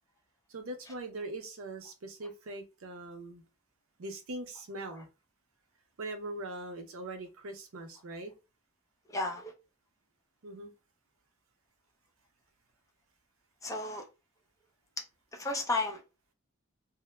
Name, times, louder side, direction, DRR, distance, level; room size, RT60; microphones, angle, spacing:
voice 1, 0.5-3.4 4.0-5.1 6.0-8.3 10.4-10.7, right 2 dB, 80° right, 0.6 m, -41 dB
voice 2, 9.1-9.5 13.6-14.1 15.3-16.0, left 2 dB, 15° left, 0.5 m, -33 dB
2.0 x 2.0 x 3.1 m
head